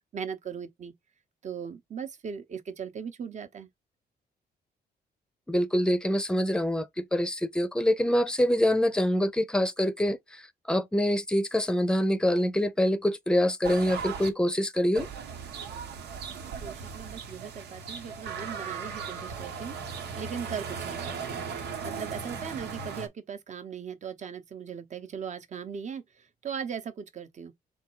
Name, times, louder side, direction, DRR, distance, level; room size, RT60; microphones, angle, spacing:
voice 1, 0.1-0.9 1.4-3.7 16.6-19.8 20.2-26.0 26.4-27.5, right 7 dB, 45° right, 1.0 m, -38 dB
voice 2, 5.5-6.9 7.1-10.2 10.7-15.1, equal, 5° left, 0.7 m, -25 dB
sound 1, 13.6-14.3 14.9-23.1, right 6 dB, 85° right, 1.2 m, -37 dB
3.7 x 3.2 x 4.5 m
cardioid pair, 120°, 17 cm